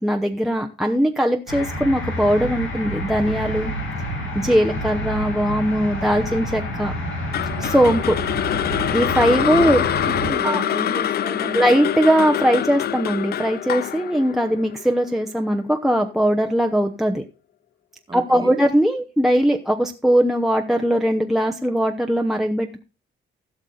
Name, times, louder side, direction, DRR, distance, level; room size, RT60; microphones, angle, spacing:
voice 1, 0.0-3.7 4.3-6.9 7.6-8.2 8.9-9.8 10.4-10.6 11.5-17.2 18.1-22.8, equal, ahead, 0.8 m, -20 dB
sound 1, 1.5-10.3, equal, 75° left, 3.6 m, -29 dB
sound 2, 7.3-15.5, left 11 dB, 55° left, 0.4 m, -25 dB
voice 2, 9.3-9.7 10.0-11.8 18.1-18.6, right 3 dB, 20° right, 1.4 m, -32 dB
16.0 x 6.2 x 3.9 m
cardioid pair, 90°, 20 cm